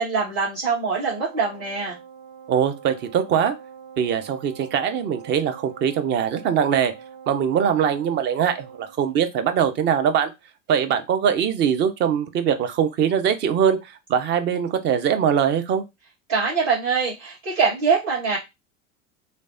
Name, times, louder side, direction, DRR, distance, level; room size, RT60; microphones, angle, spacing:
voice 1, 0.0-2.0 16.3-18.4, right 5 dB, 45° right, -9 dB, 1.6 m, -23 dB
Wind instrument woodwind instrument, 0.8-9.0, right 7 dB, 65° right, 0.9 m, -44 dB
voice 2, 2.5-3.5 4.0-6.9 7.3-10.3 10.7-15.8, right 8 dB, 30° right, 9 dB, 0.5 m, -22 dB
3.1 x 2.1 x 2.6 m, 0.22 s
figure-of-eight pair, 80°, 39 cm